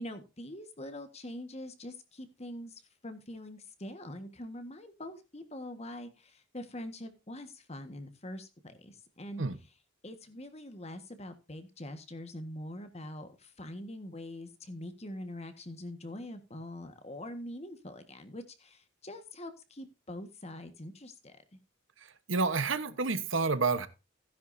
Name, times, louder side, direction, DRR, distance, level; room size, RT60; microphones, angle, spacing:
voice 1, 0.0-9.4 10.0-21.6, left 1 dB, 30° left, 1.6 m, -44 dB
voice 2, 22.3-23.9, right 4 dB, 70° right, 1.2 m, -29 dB
16.0 x 10.0 x 2.7 m
head